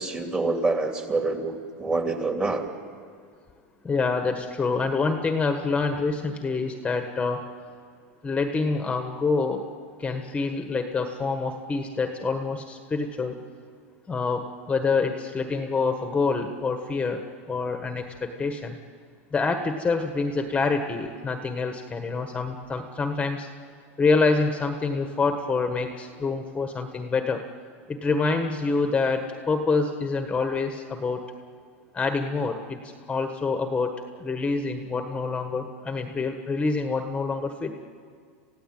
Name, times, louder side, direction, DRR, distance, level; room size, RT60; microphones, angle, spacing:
voice 1, 0.0-2.6, right 3 dB, 20° right, 4 dB, 2.9 m, -26 dB
voice 2, 3.8-7.4 8.2-9.6 10.0-13.4 14.1-17.2 17.5-18.8 19.3-23.5 24.0-27.4 27.9-31.2 31.9-33.9 34.2-37.7, left 4 dB, 15° left, 6 dB, 1.4 m, -26 dB
28.0 x 16.0 x 9.0 m, 2.1 s
supercardioid pair, 125°, 7 cm